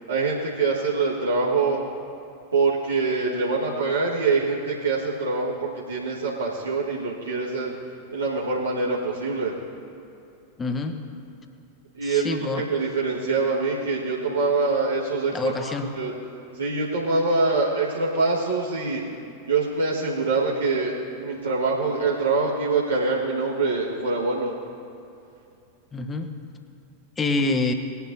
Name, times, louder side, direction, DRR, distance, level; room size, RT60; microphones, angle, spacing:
voice 1, 0.0-1.8 2.5-7.7 8.1-9.5 12.0-15.3 15.6-16.1 16.5-19.0 19.5-20.9 21.2-24.5, right 3 dB, 75° right, -7 dB, 1.7 m, -24 dB
voice 2, 10.6-11.0 12.0-12.6 15.3-15.9 25.9-26.3 27.2-27.7, left 3 dB, 20° left, 6 dB, 1.0 m, -26 dB
20.5 x 11.0 x 2.8 m, 2.7 s
figure-of-eight pair, 90°, 0 cm